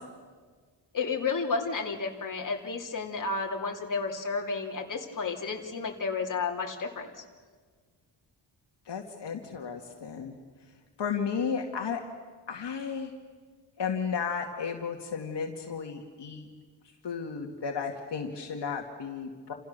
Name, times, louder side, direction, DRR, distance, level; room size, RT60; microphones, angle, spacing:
voice 1, 0.9-7.1, left 4 dB, 45° left, 1 dB, 2.9 m, -32 dB
voice 2, 8.9-10.4 11.0-12.0 12.5-13.1 13.8-16.5 17.0-19.5, left 6 dB, 70° left, 2 dB, 2.3 m, -33 dB
29.0 x 28.0 x 6.8 m, 1.5 s
wide cardioid pair, 170°, 44 cm